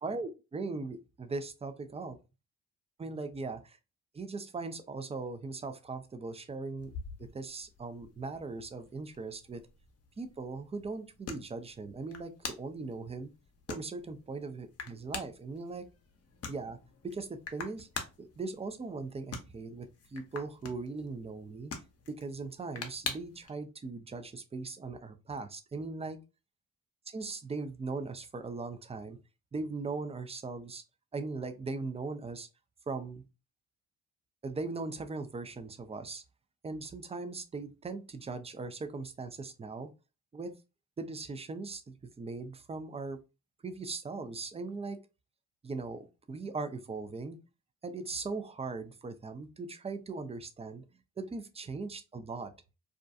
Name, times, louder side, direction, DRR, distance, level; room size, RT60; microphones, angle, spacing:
voice 1, 0.0-2.2 3.0-3.8 4.1-6.9 7.2-9.6 10.2-13.3 13.7-15.9 16.5-16.8 17.0-21.7 22.1-26.2 27.1-29.2 29.5-30.8 31.1-32.5 32.9-33.2 34.4-36.2 36.6-39.9 40.3-40.5 41.0-43.2 43.6-45.0 45.6-47.4 47.8-50.8 51.2-52.5, right 3 dB, 15° right, 0.4 m, -39 dB
sound 1, 6.8-23.5, left 5 dB, 40° left, 0.7 m, -46 dB
2.4 x 2.2 x 2.5 m
hypercardioid pair, 45°, 38 cm